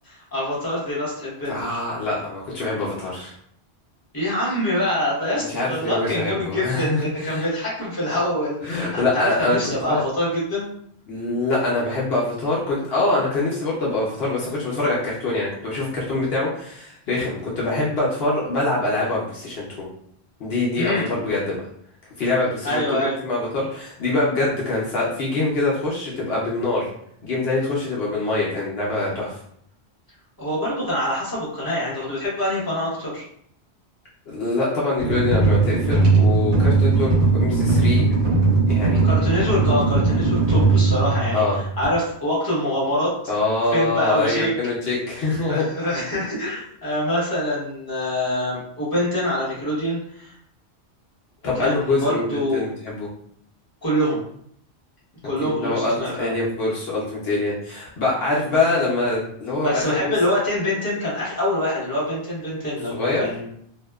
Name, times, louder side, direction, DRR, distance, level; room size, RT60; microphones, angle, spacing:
voice 1, 0.0-1.8 4.1-10.7 20.8-21.1 22.6-23.2 30.4-33.2 39.0-43.1 43.7-44.5 45.5-50.3 51.6-52.6 53.8-54.2 55.2-56.3 59.6-63.5, left 1 dB, 20° left, -8 dB, 0.9 m, -25 dB
voice 2, 1.5-3.3 5.3-7.4 8.6-10.0 11.1-19.9 20.4-21.6 22.2-22.8 23.2-26.9 27.2-29.4 34.3-38.1 38.7-39.0 41.3-41.6 43.3-45.6 51.4-53.1 55.4-60.1 62.9-63.3, left 2 dB, 70° left, -6 dB, 0.8 m, -24 dB
sound 1, 35.0-41.8, right 3 dB, 75° right, 1.2 m, -19 dB
2.7 x 2.1 x 2.2 m, 0.68 s
omnidirectional pair, 1.1 m